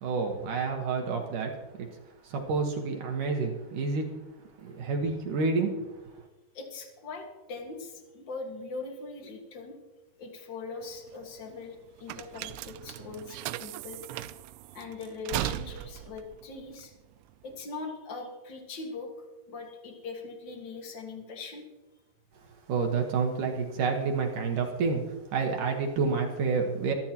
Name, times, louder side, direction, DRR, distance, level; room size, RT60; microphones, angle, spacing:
voice 1, 0.0-1.9 2.2-4.1 4.6-5.9 22.7-26.9, right 4 dB, 60° right, 2 dB, 2.4 m, -29 dB
voice 2, 6.5-9.7 10.2-14.0 14.7-16.9 17.4-21.6, left 4 dB, 75° left, 2 dB, 1.0 m, -41 dB
sound 1, 10.8-17.6, right 14 dB, 85° right, 2.8 m, -38 dB
24.5 x 12.0 x 3.0 m, 1.2 s
omnidirectional pair, 5.2 m